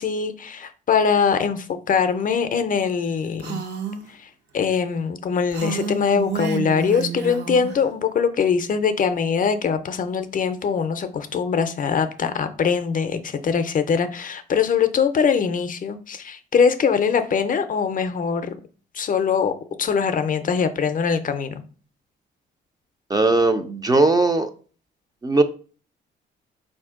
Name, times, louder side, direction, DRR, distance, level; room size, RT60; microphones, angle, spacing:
voice 1, 0.0-3.6 4.5-18.6 18.9-19.5 19.8-21.6, left 6 dB, 45° left, 9 dB, 0.5 m, -22 dB
Female speech woman speaking, 3.4-4.0 5.5-7.8, right 5 dB, 60° right, 0.7 m, -30 dB
voice 2, 23.1-24.5 25.2-25.4, right 2 dB, 20° right, 8 dB, 0.4 m, -18 dB
4.2 x 2.6 x 3.6 m, 0.40 s
cardioid pair, 90°, 20 cm